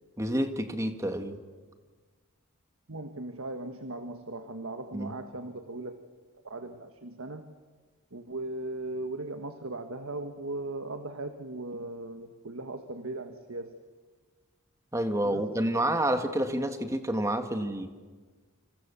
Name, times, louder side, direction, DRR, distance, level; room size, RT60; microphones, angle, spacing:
voice 1, 0.2-1.4 4.9-5.2 14.9-17.9, right 1 dB, 15° right, 7 dB, 1.8 m, -29 dB
voice 2, 2.9-6.0 6.4-7.5 8.1-13.7 15.2-15.4, right 2 dB, 70° right, 7 dB, 1.6 m, -38 dB
29.0 x 27.5 x 7.0 m, 1.4 s
head